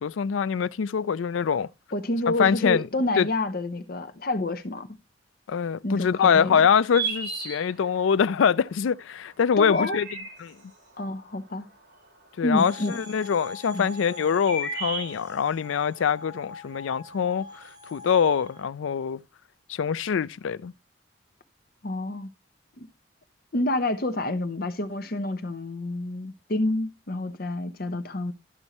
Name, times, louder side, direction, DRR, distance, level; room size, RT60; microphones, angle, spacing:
voice 1, 0.0-1.7 2.3-2.9 3.2-3.3 5.5-10.1 10.4-10.6 12.4-17.6 17.9-19.2 19.7-20.7, left 7 dB, 85° left, 0.4 m, -24 dB
voice 2, 1.9-4.9 5.8-6.6 9.6-10.0 11.0-11.7 12.4-13.0 13.7-14.0 21.8-22.3 22.8-22.9 23.5-28.3, left 2 dB, 50° left, 0.9 m, -28 dB
sound 1, 6.8-8.1 9.4-10.7 11.9-12.6 13.6-15.6, right 3 dB, 65° right, 2.6 m, -33 dB
sound 2, 12.6-18.7, left 2 dB, 20° right, 1.4 m, -44 dB
12.5 x 5.3 x 2.9 m
head